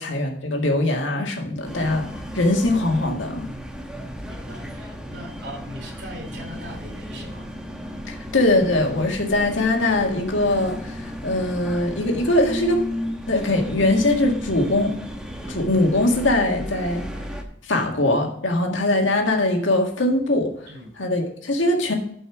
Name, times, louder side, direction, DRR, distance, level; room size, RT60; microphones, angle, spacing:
voice 1, 0.0-2.1 2.3-3.5 8.1-12.8 13.3-14.9 15.5-17.0 17.6-20.5 21.0-21.9, left 1 dB, 75° left, 2 dB, 1.9 m, -21 dB
sound 1, 1.6-17.4, equal, 5° right, 1.0 m, -34 dB
voice 2, 4.3-7.5 20.7-20.9, right 1 dB, 60° right, 0 dB, 3.7 m, -40 dB
11.0 x 5.5 x 4.7 m, 0.70 s
head